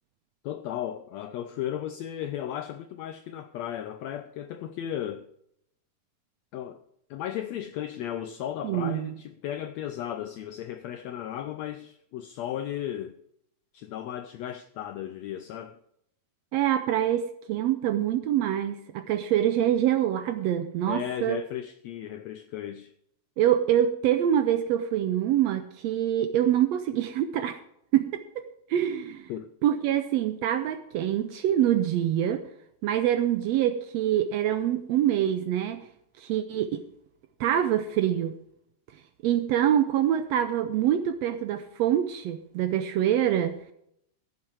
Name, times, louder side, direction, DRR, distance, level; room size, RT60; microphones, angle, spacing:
voice 1, 0.4-5.2 6.5-6.8 7.1-13.1 13.7-15.8 20.8-22.9 29.3-29.5, left 11 dB, 80° left, 1.5 m, -35 dB
voice 2, 8.6-9.1 16.5-21.4 23.4-27.6 27.9-28.4 28.7-29.3 29.6-32.4 32.8-35.8 36.2-36.8 37.4-38.3 39.2-43.5, right 11 dB, 80° right, 1.5 m, -25 dB
15.0 x 7.5 x 4.7 m
omnidirectional pair, 3.7 m